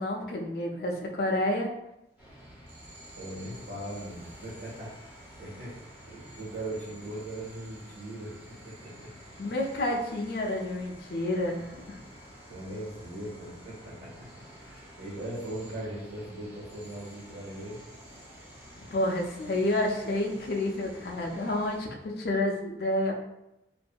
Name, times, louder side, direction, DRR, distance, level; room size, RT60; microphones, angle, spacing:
voice 1, 0.0-1.7 9.4-12.0 18.9-23.1, left 1 dB, 60° left, 1 dB, 0.4 m, -29 dB
sound 1, 2.2-21.8, equal, 10° right, 0.6 m, -50 dB
voice 2, 3.2-5.8 6.0-9.1 9.4-9.5 12.5-14.3 14.6-17.8, right 1 dB, 75° right, -7 dB, 1.4 m, -40 dB
2.7 x 2.5 x 2.2 m, 0.87 s
head